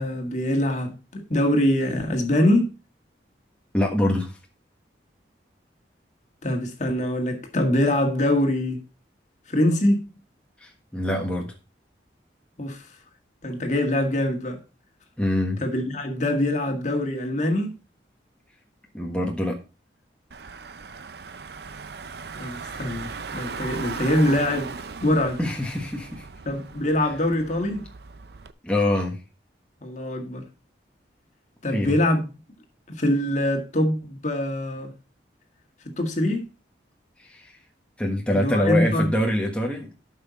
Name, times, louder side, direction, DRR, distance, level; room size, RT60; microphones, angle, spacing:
voice 1, 0.0-2.7 6.4-8.8 9.5-10.1 12.6-12.9 13.4-14.6 15.6-17.8 22.4-24.7 25.0-25.4 26.5-27.9 29.8-30.4 31.6-32.2 32.9-34.9 36.0-36.4 38.3-39.1, left 1 dB, 40° left, 1.9 m, -24 dB
voice 2, 3.7-4.3 10.6-11.5 15.2-15.6 18.9-19.5 25.4-26.2 28.6-29.2 31.7-31.9 37.2-37.5 38.0-39.9, left 1 dB, 5° left, 1.3 m, -24 dB
Car / Engine, 20.3-28.5, right 4 dB, 60° right, 0.6 m, -37 dB
12.5 x 5.7 x 4.2 m
head